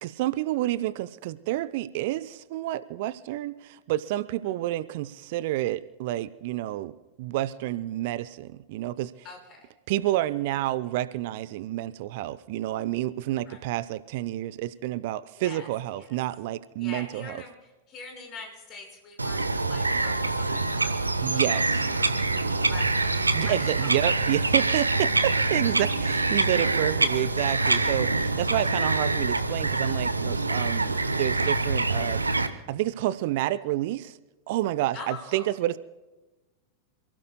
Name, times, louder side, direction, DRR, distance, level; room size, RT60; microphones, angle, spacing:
voice 1, 0.0-6.9 7.2-9.1 9.9-17.4 21.2-21.9 23.3-32.2 32.7-34.2 34.5-35.8, right 15 dB, 50° right, 17 dB, 0.5 m, -29 dB
voice 2, 9.2-9.7 13.5-13.6 15.4-15.7 16.0-16.1 16.8-17.5 17.9-21.4 21.9-22.2 22.6-23.1 23.3-23.9 24.7-24.9 27.1-27.3 34.9-35.5, left 4 dB, 35° left, 1 dB, 5.2 m, -43 dB
Bird vocalization bird call bird song, 19.2-32.5, right 3 dB, 80° right, 0.9 m, -25 dB
28.0 x 16.0 x 2.3 m, 1.1 s
figure-of-eight pair, 90°, 0 cm